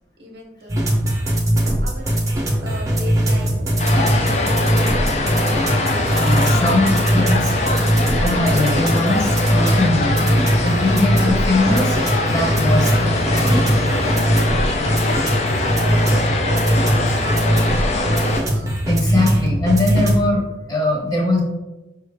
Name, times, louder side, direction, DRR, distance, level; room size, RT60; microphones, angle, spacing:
voice 1, 0.2-0.9 1.8-3.6 4.0-4.7 5.0-6.3 15.3-18.8, right 1 dB, 60° right, 1 dB, 0.7 m, -37 dB
sound 1, 0.7-20.2, right 1 dB, 20° right, 0.7 m, -20 dB
sound 2, 3.8-18.4, left 2 dB, 40° left, 0.4 m, -23 dB
voice 2, 6.2-7.5 8.1-12.0 12.2-13.6 18.6-21.4, left 2 dB, 20° left, -2 dB, 0.9 m, -21 dB
sound 3, 11.5-17.3, left 1 dB, 60° left, 1.2 m, -42 dB
5.4 x 2.4 x 3.3 m, 1.0 s
head